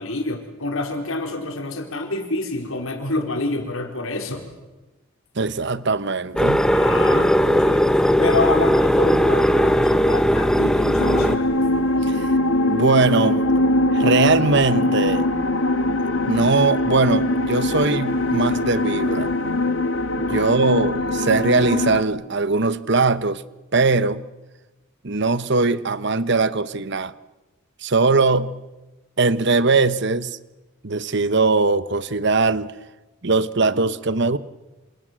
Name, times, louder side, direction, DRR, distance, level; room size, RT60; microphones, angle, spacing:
voice 1, 0.0-4.4 6.7-11.5 20.3-20.4, left 2 dB, 80° left, 4.7 m, -27 dB
voice 2, 5.3-6.7 12.0-12.4 12.7-13.5 13.9-15.3 16.3-19.3 20.1-23.4 23.7-24.2 25.0-27.1 27.8-28.6 29.2-30.4 30.8-32.7 33.2-34.4, right 3 dB, 55° right, 1.1 m, -20 dB
sound 1, 6.4-11.4, equal, 5° left, 1.0 m, -18 dB
sound 2, 11.0-22.0, left 1 dB, 65° left, 1.8 m, -22 dB
28.5 x 27.5 x 7.6 m
head